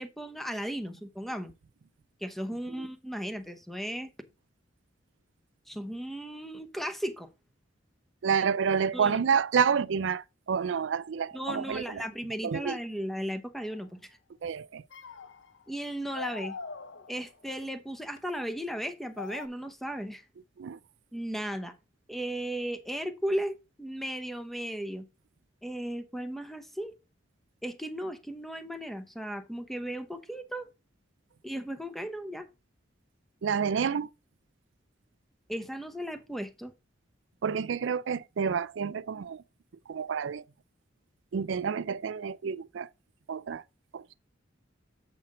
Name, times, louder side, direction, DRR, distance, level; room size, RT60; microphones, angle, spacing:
voice 1, 0.0-1.5 2.2-4.1 5.7-7.3 8.9-9.2 11.3-14.2 15.7-16.6 17.1-20.2 21.1-21.8 22.1-25.1 25.6-26.9 27.6-30.7 31.4-32.5 35.5-36.7, equal, ahead, 0.8 m, -36 dB
voice 2, 8.2-12.0 12.4-12.8 14.4-14.8 20.6-20.8 33.4-34.1 37.4-39.4 39.9-40.4 41.3-42.9 43.3-43.6 43.9-44.1, right 6 dB, 70° right, 0.4 m, -29 dB
sound 1, 13.6-13.9 14.9-15.7 16.1-17.5 18.2-18.3 19.2-19.5, left 4 dB, 70° left, 0.7 m, -42 dB
7.8 x 5.7 x 3.7 m
head